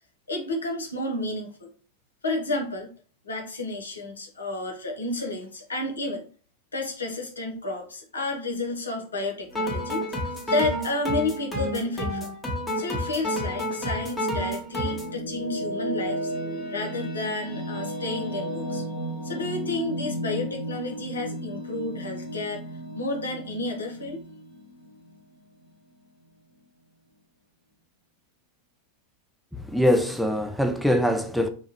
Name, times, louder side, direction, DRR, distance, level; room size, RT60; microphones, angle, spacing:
voice 1, 0.3-1.7 2.2-2.9 3.2-6.3 6.7-10.2 10.5-12.3 12.8-16.3 16.7-18.8 19.2-22.6 22.9-24.2, left 2 dB, 80° left, 0.7 m, -31 dB
sound 1, 9.5-15.1, equal, 15° left, 1.0 m, -30 dB
sound 2, 14.6-25.7, equal, 50° left, 0.9 m, -34 dB
voice 2, 29.5-31.5, equal, ahead, 0.3 m, -23 dB
2.9 x 2.3 x 2.8 m
figure-of-eight pair, 90°, 0 cm